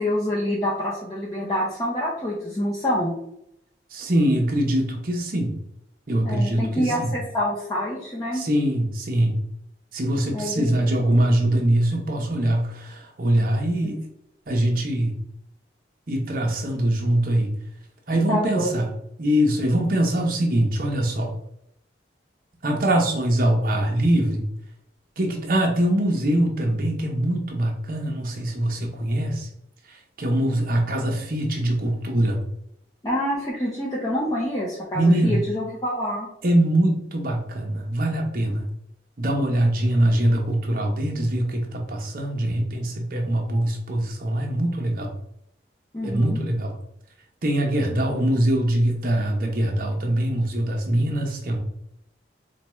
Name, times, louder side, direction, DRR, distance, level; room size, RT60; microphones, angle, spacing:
voice 1, 0.0-3.1 6.2-8.4 10.3-10.7 13.8-14.0 18.3-18.8 33.0-36.3 45.9-46.4, left 1 dB, 20° left, -6 dB, 0.6 m, -26 dB
voice 2, 3.9-5.5 6.1-7.1 8.3-9.4 9.9-14.0 14.5-15.2 16.1-17.5 18.1-18.9 19.2-21.3 22.6-24.5 25.2-29.5 30.2-32.4 34.9-35.4 36.4-38.6 39.2-45.1 46.0-46.7 47.4-51.6, right 1 dB, 50° right, 1 dB, 0.7 m, -23 dB
4.3 x 2.2 x 3.0 m, 0.75 s
head